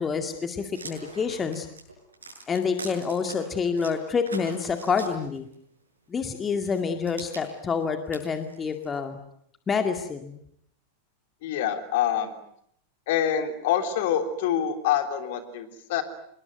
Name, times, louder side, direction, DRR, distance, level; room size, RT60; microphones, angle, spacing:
voice 1, 0.0-1.7 2.5-5.5 6.1-9.2 9.7-10.4, left 5 dB, 20° left, 7 dB, 2.2 m, -28 dB
sound 1, 0.7-3.3 3.8-5.5 6.3-9.0, right 3 dB, 75° right, 7.2 m, -43 dB
voice 2, 11.4-12.3 13.1-16.0, left 9 dB, 50° left, 8 dB, 3.4 m, -26 dB
26.5 x 22.0 x 9.2 m, 0.70 s
figure-of-eight pair, 90°, 0 cm